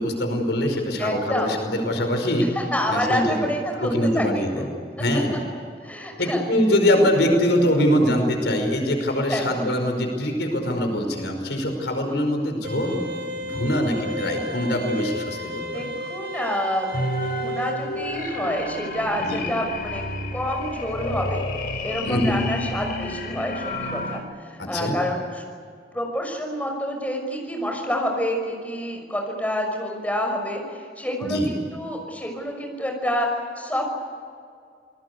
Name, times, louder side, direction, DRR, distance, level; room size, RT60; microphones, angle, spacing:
voice 1, 0.0-2.5 2.9-3.5 3.8-4.7 5.0-5.3 6.2-13.0 13.4-15.9 19.2-19.4 22.0-22.4 24.6-25.0 31.2-31.5, equal, 85° left, 4 dB, 5.2 m, -23 dB
voice 2, 1.0-1.6 2.7-4.2 4.5-4.7 5.8-6.4 9.3-9.7 12.1-12.2 15.7-16.9 17.3-20.0 20.3-21.4 21.8-25.4 25.9-33.3 33.6-33.9, equal, 10° left, 2 dB, 5.9 m, -28 dB
sound 1, 12.6-17.7, left 1 dB, 65° right, 6.5 m, -33 dB
sound 2, 16.9-24.2, left 1 dB, 55° left, 3.9 m, -30 dB
28.0 x 20.5 x 8.4 m, 2.2 s
head